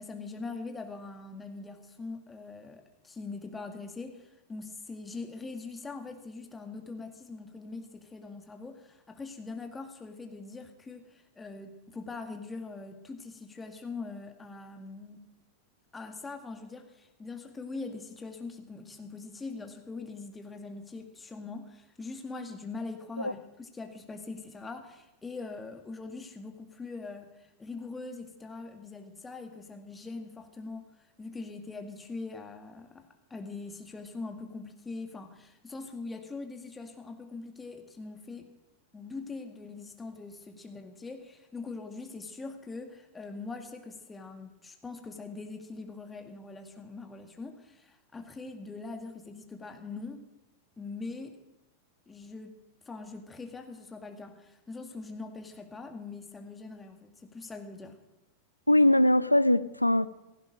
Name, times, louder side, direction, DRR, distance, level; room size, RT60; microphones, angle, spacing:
voice 1, 0.0-15.2 15.9-33.0 33.3-38.5 38.9-50.2 50.8-51.4 52.1-52.6 52.9-58.0, left 3 dB, 15° left, 2.1 m, -42 dB
voice 2, 58.7-60.1, left 1 dB, 85° left, 0.6 m, -22 dB
16.5 x 15.5 x 5.2 m
figure-of-eight pair, 90°, 0 cm